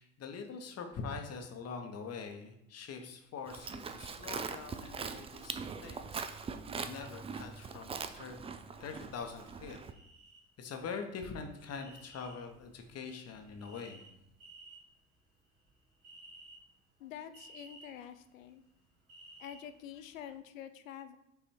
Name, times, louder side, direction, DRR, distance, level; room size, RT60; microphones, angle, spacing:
voice 1, 0.0-6.2 6.8-8.4 8.8-9.8 10.6-14.0, left 5 dB, 40° left, 5 dB, 1.1 m, -44 dB
Livestock farm animals working animals, 3.5-9.9, right 5 dB, 15° right, 0.4 m, -42 dB
sound 1, 9.9-10.4 10.7-20.4, right 2 dB, 80° right, 2.5 m, -57 dB
voice 2, 17.0-18.6 19.4-21.2, left 9 dB, 75° left, 11 dB, 0.6 m, -47 dB
5.7 x 4.1 x 4.4 m, 0.84 s
figure-of-eight pair, 65°, 40 cm